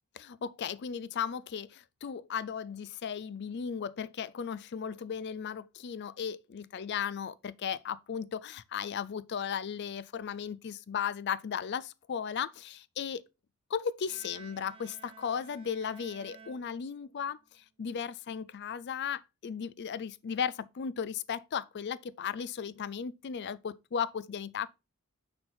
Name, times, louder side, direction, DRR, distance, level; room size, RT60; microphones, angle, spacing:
voice 1, 0.2-13.2 13.7-24.7, left 7 dB, 50° left, 0.4 m, -36 dB
Bowed string instrument, 14.1-17.4, right 6 dB, 25° right, 0.9 m, -54 dB
6.7 x 4.0 x 4.3 m
head